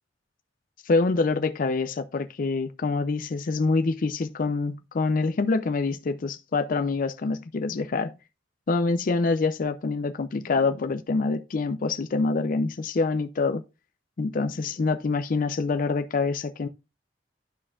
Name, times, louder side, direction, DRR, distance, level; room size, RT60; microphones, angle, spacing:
voice 1, 0.8-8.1 8.7-13.6 14.2-16.7, left 3 dB, 45° left, 0.4 m, -26 dB
12.5 x 4.3 x 2.4 m
head